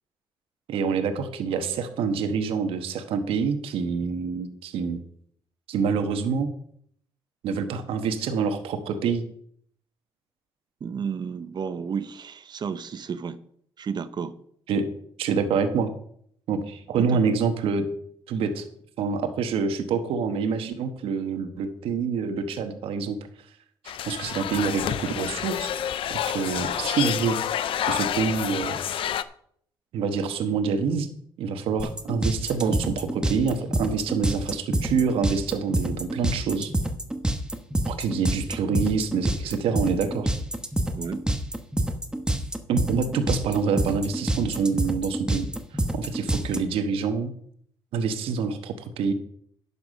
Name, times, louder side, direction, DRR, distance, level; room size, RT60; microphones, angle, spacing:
voice 1, 0.7-5.0 5.7-6.5 7.4-9.2 14.7-14.9 15.2-15.9 16.5-17.9 18.3-18.7 19.0-23.2 24.0-25.7 26.1-27.4 27.8-28.8 29.9-31.1 31.4-36.7 37.8-40.3 42.7-45.5 45.9-47.3 47.9-49.1, right 5 dB, 85° right, 7 dB, 1.3 m, -26 dB
voice 2, 10.8-13.4 13.8-14.4 17.0-17.2 40.9-41.2, right 6 dB, 50° right, 12 dB, 0.9 m, -32 dB
sound 1, 23.9-29.2, left 10 dB, 75° left, 0.6 m, -29 dB
sound 2, 31.8-46.6, right 1 dB, 10° right, 1.2 m, -27 dB
11.0 x 7.0 x 5.3 m, 0.64 s
cardioid pair, 90°, 9 cm